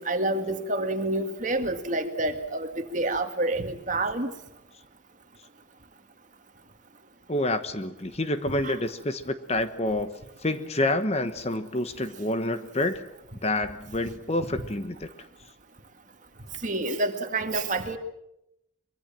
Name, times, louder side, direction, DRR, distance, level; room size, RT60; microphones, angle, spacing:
voice 1, 0.0-4.3 8.6-8.7 16.6-18.0, right 2 dB, 40° right, 6 dB, 2.1 m, -28 dB
voice 2, 7.3-10.1 10.4-13.0 13.4-15.1, left 1 dB, 30° left, 10 dB, 1.1 m, -28 dB
24.5 x 23.0 x 7.5 m, 0.82 s
head